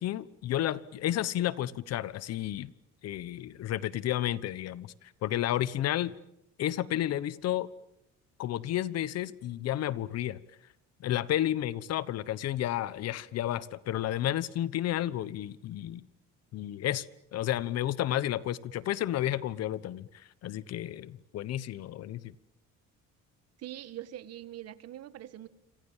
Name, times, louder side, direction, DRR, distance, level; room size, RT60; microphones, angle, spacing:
voice 1, 0.0-2.7 3.0-6.1 6.6-7.7 8.4-10.4 11.0-16.0 16.5-17.0 17.3-22.3, left 12 dB, 60° left, 1.1 m, -31 dB
voice 2, 23.6-25.5, right 13 dB, 60° right, 1.6 m, -43 dB
28.0 x 27.0 x 7.4 m
cardioid pair, 140°, 29 cm